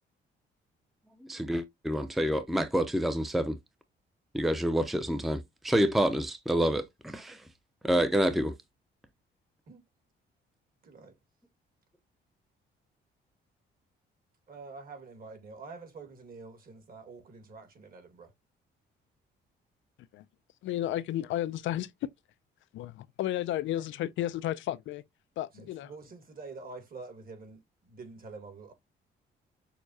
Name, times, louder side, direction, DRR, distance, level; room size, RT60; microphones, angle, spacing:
voice 1, 1.3-3.6 4.3-7.4 7.8-8.5, equal, ahead, 0.6 m, -28 dB
voice 2, 10.8-11.1 14.5-18.3 25.5-28.7, right 4 dB, 45° right, 1.7 m, -47 dB
voice 3, 20.6-21.9 22.7-25.0 25.4-25.9, left 13 dB, 75° left, 0.4 m, -32 dB
6.5 x 2.2 x 2.7 m
cardioid pair, 90°, 20 cm